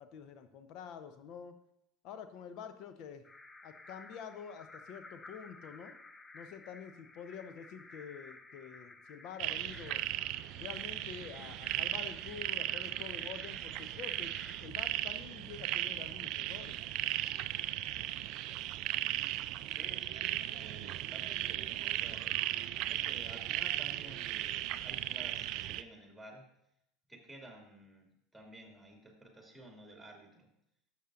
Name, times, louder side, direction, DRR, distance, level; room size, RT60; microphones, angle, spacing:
voice 1, 0.0-1.6 2.0-3.2 3.6-6.0 6.3-10.1 10.5-14.3 14.6-16.8, left 7 dB, 55° left, 10 dB, 0.8 m, -47 dB
sound 1, 3.2-14.7, left 3 dB, 15° left, 0.6 m, -54 dB
sound 2, 9.4-25.8, right 14 dB, 55° right, 0.3 m, -37 dB
voice 2, 19.7-22.2 22.9-26.4 27.1-28.1 28.3-30.5, right 1 dB, ahead, 0 dB, 2.4 m, -53 dB
12.0 x 7.4 x 2.5 m, 0.78 s
hypercardioid pair, 75°, 0 cm